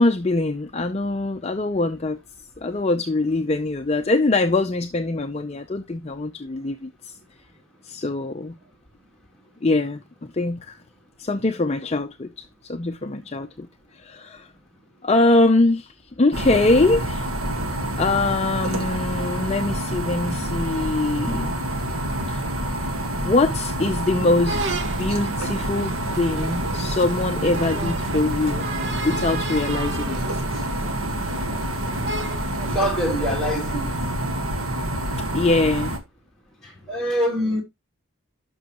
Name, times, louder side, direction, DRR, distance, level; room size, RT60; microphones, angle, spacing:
voice 1, 0.0-2.2 2.6-7.2 7.8-8.5 9.6-10.8 11.2-14.5 15.0-17.3 18.0-21.6 22.3-22.5 23.2-24.6 25.0-28.7 29.0-30.4 35.2-36.0, left 2 dB, 30° left, 0.5 m, -23 dB
sound 1, 16.3-36.0, right 1 dB, 75° right, 1.5 m, -27 dB
sound 2, 24.5-32.8, right 2 dB, 60° right, 1.0 m, -33 dB
voice 2, 32.7-33.9 36.9-37.6, equal, 5° left, 2.7 m, -24 dB
11.0 x 6.2 x 2.9 m
head